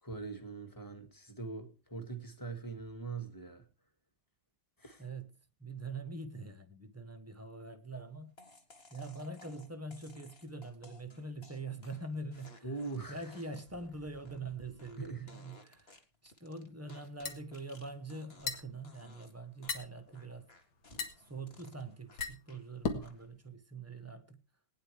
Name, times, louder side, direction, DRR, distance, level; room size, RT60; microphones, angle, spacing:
voice 1, 0.0-3.7 4.8-5.0 12.6-13.3 15.0-15.3, right 4 dB, 10° left, 1.9 m, -42 dB
voice 2, 5.0-5.3 5.6-8.4 8.9-12.8 13.1-20.5 21.2-24.4, right 2 dB, 15° right, 0.5 m, -44 dB
sound 1, 8.4-18.6 18.8-19.3 19.6-22.6 23.0-23.5, left 2 dB, 30° left, 1.8 m, -58 dB
sound 2, 16.9-23.2, left 5 dB, 70° left, 2.4 m, -40 dB
20.5 x 10.0 x 3.4 m
omnidirectional pair, 2.3 m